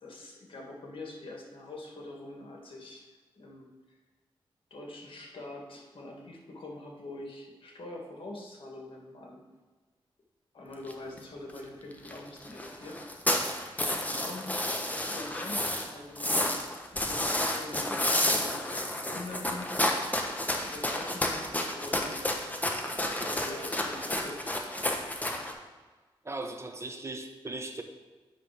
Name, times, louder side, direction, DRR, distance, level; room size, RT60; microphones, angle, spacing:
voice 1, 0.0-3.1 3.4-3.7 4.7-9.4 10.5-14.5 14.9-20.0 20.6-22.2 22.9-24.5, left 2 dB, 60° left, 0 dB, 1.9 m, -44 dB
sound 1, 10.9-11.0 11.2-11.3 11.5-11.6 11.9-12.2 12.4-15.9 16.2-25.5, left 1 dB, 15° left, 1.0 m, -30 dB
voice 2, 26.2-27.8, right 2 dB, 30° right, 5 dB, 1.0 m, -38 dB
9.2 x 3.4 x 6.1 m, 1.3 s
cardioid pair, 60°, 10 cm